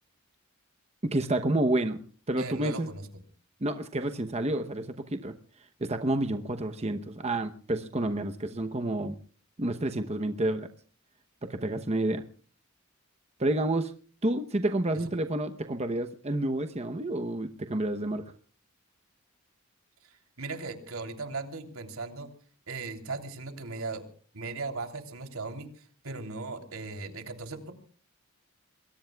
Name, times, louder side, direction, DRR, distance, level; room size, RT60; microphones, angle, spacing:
voice 1, 1.0-2.0 2.3-2.9 3.6-5.4 5.8-9.1 9.6-10.7 11.4-12.2 13.4-13.9 14.2-18.3, right 1 dB, 30° right, 7 dB, 0.9 m, -29 dB
voice 2, 2.4-3.0 14.9-15.1 20.0-22.3 22.7-24.1 24.3-27.7, right 3 dB, 75° right, 5 dB, 3.2 m, -38 dB
28.0 x 22.0 x 2.3 m, 0.42 s
head